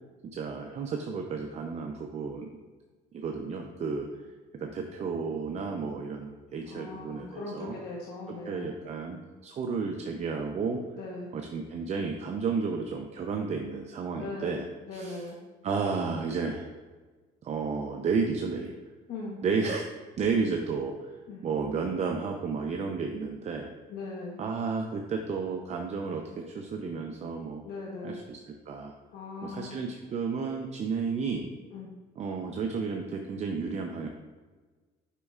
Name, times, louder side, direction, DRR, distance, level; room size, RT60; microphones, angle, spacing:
voice 1, 0.3-2.5 3.1-4.1 4.6-7.7 8.4-10.8 11.3-14.7 14.9-15.3 15.6-16.7 17.4-18.7 19.4-19.9 20.2-20.9 21.4-23.7 24.4-27.6 28.0-28.4 28.7-28.9 29.4-31.5 32.2-34.1, right 5 dB, 40° right, 3 dB, 0.6 m, -32 dB
voice 2, 6.7-8.7 11.0-11.3 14.1-14.6 14.9-15.4 19.1-19.4 21.3-21.4 23.9-24.4 27.6-28.2 29.1-29.8 31.7-31.9, left 3 dB, 75° left, -2 dB, 1.0 m, -39 dB
8.1 x 5.3 x 2.4 m, 1.4 s
cardioid pair, 110°, 17 cm